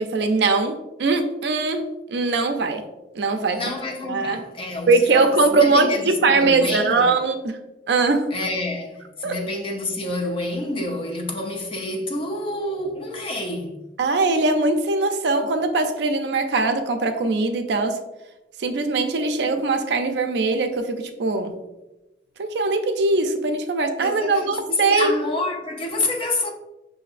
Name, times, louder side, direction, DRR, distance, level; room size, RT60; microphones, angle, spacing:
voice 1, 0.0-2.8 3.2-3.6 4.1-4.4 4.9-7.6 7.9-8.3 9.2-9.3 14.0-18.0 18.6-21.5 22.4-25.1, right 3 dB, 70° right, 0.4 m, -21 dB
voice 2, 3.5-7.1 8.3-13.8 24.0-26.5, left 2 dB, 30° left, 0.5 m, -28 dB
5.8 x 2.6 x 2.4 m
head